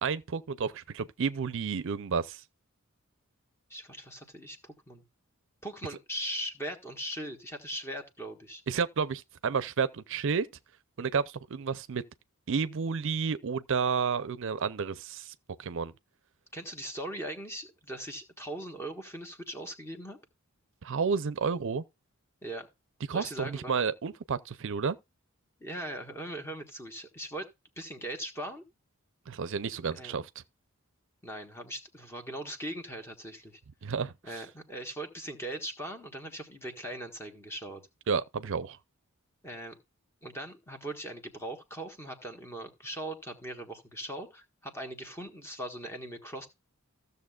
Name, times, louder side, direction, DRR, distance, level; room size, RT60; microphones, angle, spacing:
voice 1, 0.0-2.4 8.7-10.5 11.0-12.0 12.5-15.9 20.8-21.8 23.1-25.0 29.3-30.3 33.8-34.4 38.1-38.8, right 5 dB, 60° right, 0.5 m, -31 dB
voice 2, 3.7-5.0 5.6-8.6 16.5-20.2 22.4-22.7 23.1-23.8 25.6-27.5 27.8-28.6 29.9-30.2 31.2-33.6 34.2-37.8 39.4-39.8 40.2-46.5, right 1 dB, 10° left, 1.5 m, -40 dB
15.0 x 6.8 x 2.4 m
head